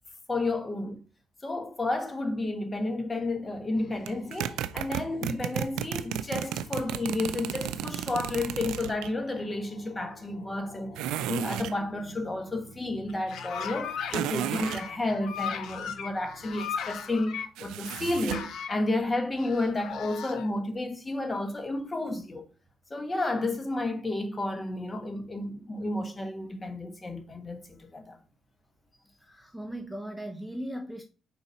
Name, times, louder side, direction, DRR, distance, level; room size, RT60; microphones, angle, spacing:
voice 1, 0.3-1.0 1.4-22.5 22.9-28.2, left 2 dB, 25° left, 1.3 m, -31 dB
sound 1, 3.7-17.8, left 2 dB, 55° left, 2.7 m, -52 dB
sound 2, 4.1-9.1 11.0-11.8 14.1-14.9 17.6-18.5, right 11 dB, 90° right, 0.3 m, -33 dB
sound 3, 13.1-14.2 14.5-17.5 17.8-18.8 19.4-20.5, left 7 dB, 75° left, 0.9 m, -37 dB
voice 2, 29.2-31.0, right 1 dB, 5° left, 0.8 m, -38 dB
4.8 x 4.1 x 5.1 m
supercardioid pair, 65°, 0 cm